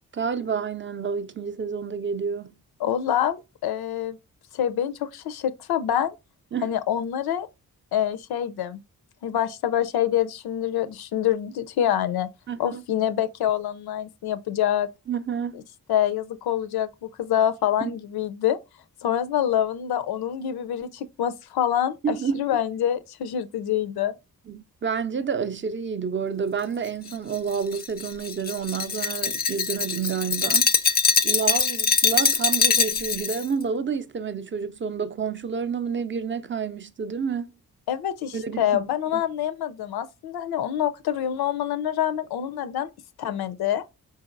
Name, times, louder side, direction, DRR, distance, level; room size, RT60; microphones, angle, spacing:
voice 1, 0.1-2.6 6.5-6.7 12.5-12.8 15.1-15.6 17.8-18.0 22.0-22.4 24.5-30.7 31.2-37.5 38.3-38.6 39.1-39.2, right 6 dB, 35° right, 0.4 m, -29 dB
voice 2, 2.8-4.2 4.5-6.1 6.6-7.5 7.9-8.8 9.2-12.3 12.6-14.9 15.9-18.6 19.0-24.2 37.9-42.9 43.2-43.8, left 10 dB, 85° left, 0.5 m, -26 dB
Glass, 27.1-33.4, left 5 dB, 25° left, 0.4 m, -23 dB
4.0 x 3.9 x 2.5 m
cardioid pair, 55°, 36 cm